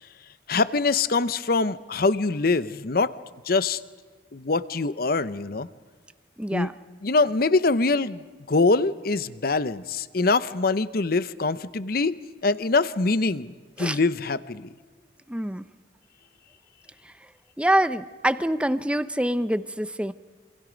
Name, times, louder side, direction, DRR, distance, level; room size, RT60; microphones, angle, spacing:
voice 1, 0.5-3.1 3.5-3.8 4.3-5.7 6.5-6.7 7.0-8.2 8.5-12.1 12.4-13.5 13.8-14.7, left 3 dB, 55° left, 15 dB, 0.8 m, -23 dB
voice 2, 6.4-6.7 13.8-14.0 15.3-15.6 17.0-17.1 17.6-20.1, right 1 dB, 5° right, 13 dB, 0.6 m, -25 dB
27.5 x 26.0 x 5.2 m, 1.5 s
head